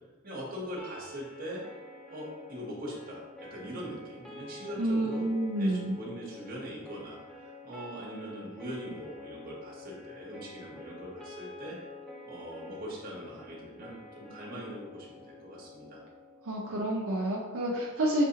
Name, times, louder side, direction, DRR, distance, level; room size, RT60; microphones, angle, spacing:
voice 1, 0.2-1.6 2.1-3.2 3.5-5.3 5.6-11.8 12.3-16.0, equal, 40° right, -4 dB, 1.1 m, -41 dB
sound 1, 0.8-16.8, left 2 dB, 5° left, 0.5 m, -49 dB
voice 2, 4.8-6.0 16.4-18.2, right 1 dB, 75° right, -3 dB, 0.6 m, -29 dB
6.0 x 2.7 x 2.8 m, 1.3 s
head